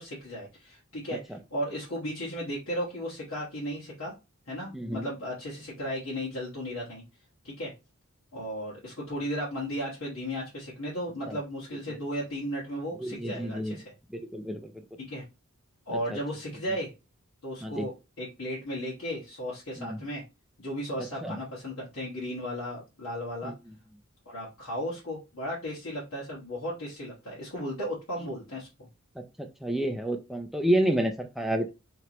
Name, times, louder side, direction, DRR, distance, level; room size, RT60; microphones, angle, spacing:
voice 1, 0.0-4.1 4.5-7.0 7.4-7.7 8.3-13.9 15.0-15.2 15.8-16.9 17.4-20.2 20.6-23.5 24.2-28.7, equal, 80° left, -6 dB, 1.5 m, -35 dB
voice 2, 4.7-5.0 11.3-11.4 13.0-13.8 14.1-14.7 17.6-17.9 19.8-20.0 21.2-21.4 23.4-23.5 29.4-31.7, right 1 dB, ahead, 4 dB, 0.4 m, -29 dB
4.6 x 3.0 x 2.9 m, 0.27 s
head